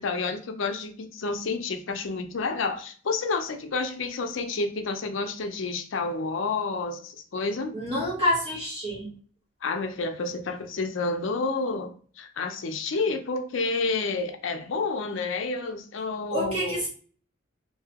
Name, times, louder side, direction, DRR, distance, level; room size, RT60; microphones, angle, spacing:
voice 1, 0.0-7.8 9.6-16.8, left 3 dB, 70° left, 6 dB, 0.5 m, -30 dB
voice 2, 7.7-9.1 16.3-16.9, equal, 30° right, -6 dB, 0.9 m, -27 dB
2.8 x 2.6 x 2.8 m, 0.43 s
head